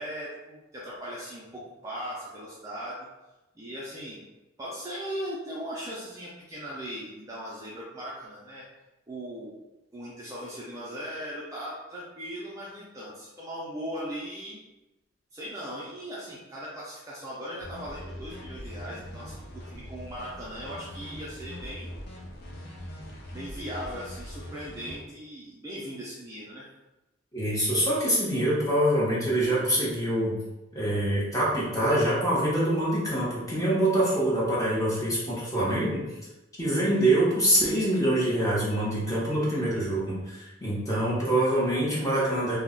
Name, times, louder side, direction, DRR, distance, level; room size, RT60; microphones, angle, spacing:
voice 1, 0.0-3.1 3.6-4.2 4.6-8.6 9.1-9.5 9.9-14.6 15.3-21.9 23.3-26.7, equal, 15° right, -7 dB, 0.4 m, -38 dB
sound 1, 17.6-25.0, equal, 55° left, 0.5 m, -42 dB
voice 2, 27.3-30.4 30.7-36.0 36.6-42.6, right 1 dB, 20° left, -7 dB, 0.8 m, -25 dB
2.3 x 2.1 x 3.6 m, 1.0 s
head